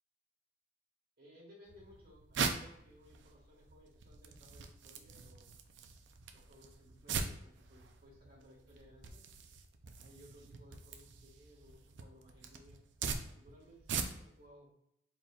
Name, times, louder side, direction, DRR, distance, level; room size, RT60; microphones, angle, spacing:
voice 1, 1.2-5.5 6.3-9.2 9.9-12.8 13.2-14.7, equal, 55° right, -4 dB, 1.6 m, -61 dB
sound 1, 1.7-14.5, right 5 dB, 75° right, 0.4 m, -42 dB
4.4 x 4.0 x 2.3 m, 0.76 s
head